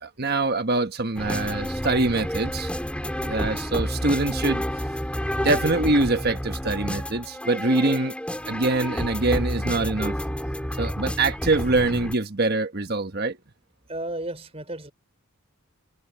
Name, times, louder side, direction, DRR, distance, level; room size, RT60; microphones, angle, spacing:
voice 1, 0.0-2.7 3.2-4.6 5.4-8.1 8.5-10.1 10.8-13.4, right 2 dB, 45° right, 1.3 m, -24 dB
sound 1, 1.2-12.1, equal, 5° left, 4.1 m, -29 dB
voice 2, 13.9-14.9, right 1 dB, 30° right, 4.7 m, -33 dB
head